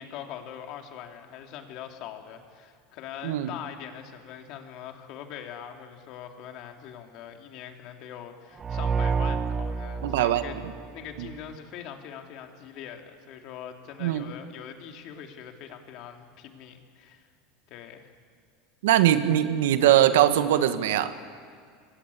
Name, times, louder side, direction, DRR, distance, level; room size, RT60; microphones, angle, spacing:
voice 1, 0.0-10.6 10.9-17.3 17.7-18.1, left 9 dB, 50° left, 4 dB, 2.9 m, -42 dB
sound 1, 8.6-11.4, right 5 dB, 20° right, 0.6 m, -29 dB
voice 2, 10.0-10.4 14.0-14.2 18.8-21.1, right 12 dB, 85° right, 10 dB, 1.5 m, -21 dB
26.5 x 22.0 x 8.6 m, 2.1 s
supercardioid pair, 140°, 0 cm